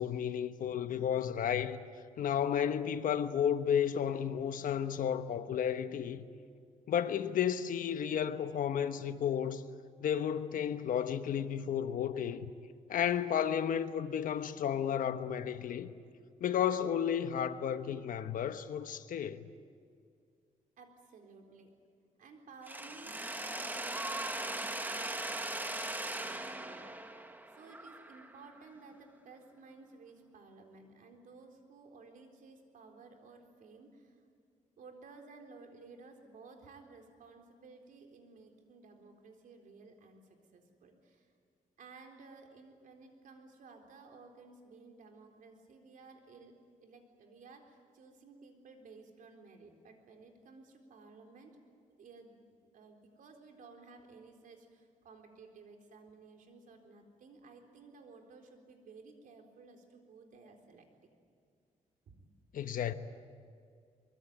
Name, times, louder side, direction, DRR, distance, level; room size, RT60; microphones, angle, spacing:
voice 1, 0.0-1.8 2.2-6.2 6.9-9.6 10.0-12.5 12.9-15.9 16.4-19.4 62.5-62.9, left 9 dB, 75° left, 1.2 m, -32 dB
voice 2, 20.8-21.7 22.2-23.2 23.5-34.2 34.8-41.3 41.8-46.5 46.8-51.6 52.0-60.9 62.1-62.3, right 4 dB, 75° right, 4.0 m, -56 dB
Mechanisms, 22.7-28.5, right 1 dB, 15° right, 1.6 m, -39 dB
23.5 x 23.0 x 9.4 m
cardioid pair, 130°, 14 cm